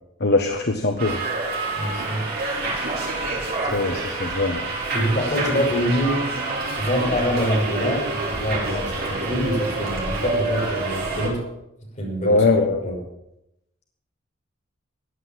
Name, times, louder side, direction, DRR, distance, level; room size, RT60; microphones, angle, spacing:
voice 1, 0.2-1.2 3.7-4.6 12.2-12.8, left 3 dB, 55° left, 4 dB, 1.3 m, -21 dB
Subway metro underground, 1.0-11.3, right 2 dB, 50° right, 5.3 m, -27 dB
voice 2, 1.8-2.3 4.9-6.2 6.8-11.4 12.0-12.4 12.8-13.0, equal, 40° left, -1 dB, 6.0 m, -25 dB
15.0 x 10.0 x 7.6 m, 0.86 s
head